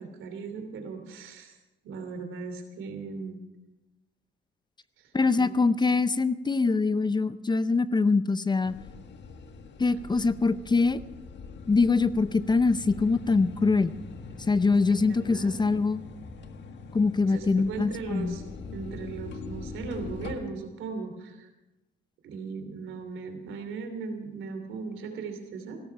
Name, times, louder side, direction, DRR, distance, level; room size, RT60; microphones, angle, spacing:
voice 1, 0.0-1.5 1.8-3.4 5.0-5.1 5.4-5.6 9.8-10.0 15.2-15.6 17.3-18.4 18.7-21.5 22.2-25.8, right 4 dB, 85° right, 6 dB, 2.9 m, -38 dB
voice 2, 5.1-8.7 9.8-11.0 11.7-13.9 14.5-16.0 16.9-18.4, left 4 dB, 20° left, 15 dB, 0.6 m, -24 dB
sound 1, 8.6-20.3, left 4 dB, 65° left, 1.6 m, -43 dB
16.5 x 12.5 x 5.9 m, 1.0 s
cardioid pair, 90°, 20 cm